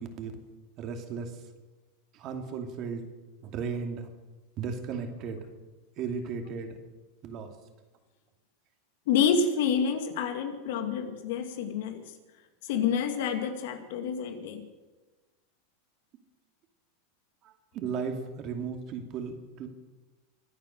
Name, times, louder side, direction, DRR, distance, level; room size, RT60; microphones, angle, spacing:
voice 1, 0.8-1.3 2.1-3.0 3.4-4.1 4.6-5.4 6.0-6.8 7.2-7.5 17.4-19.7, right 5 dB, 40° right, 5 dB, 2.5 m, -35 dB
voice 2, 9.1-12.0 12.7-14.7, left 6 dB, 70° left, 7 dB, 2.3 m, -28 dB
24.5 x 8.9 x 6.6 m, 1.2 s
supercardioid pair, 130°, 0 cm